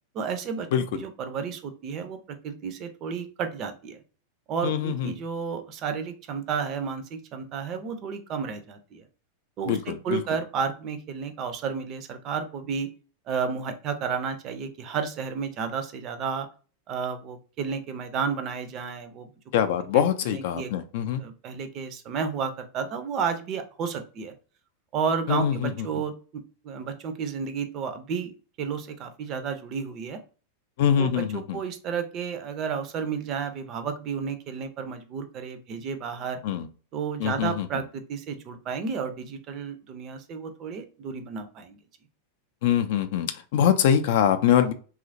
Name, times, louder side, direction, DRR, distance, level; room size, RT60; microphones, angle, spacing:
voice 1, 0.1-4.0 4.5-9.0 9.6-12.9 13.3-16.5 16.9-19.3 19.9-20.8 21.2-24.3 24.9-30.2 31.0-36.4 36.9-41.8, right 6 dB, 35° right, 8 dB, 0.4 m, -32 dB
voice 2, 4.6-5.1 9.7-10.2 19.5-21.2 25.3-25.7 30.8-31.6 36.4-36.7 37.2-37.7 42.6-44.7, left 9 dB, 50° left, 9 dB, 0.3 m, -23 dB
2.9 x 2.4 x 2.5 m, 0.37 s
figure-of-eight pair, 90°, 0 cm